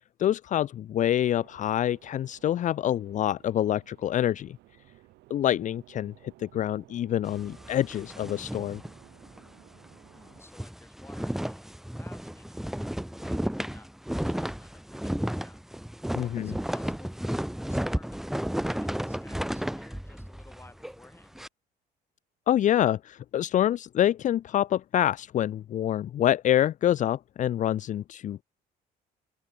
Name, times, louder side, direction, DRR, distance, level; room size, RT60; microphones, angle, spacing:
voice 1, 0.2-4.6 5.3-6.1 6.4-8.8 16.2-16.5 22.5-28.4, left 11 dB, 50° left, 0.6 m, -26 dB
sound 1, 1.1-10.4, right 18 dB, 85° right, 4.0 m, -57 dB
sound 2, 7.2-9.5 9.8-10.0 10.3-21.5, equal, ahead, 1.0 m, -33 dB
voice 2, 10.1-21.4, left 2 dB, 15° left, 6.7 m, -55 dB
cardioid pair, 110°, 17 cm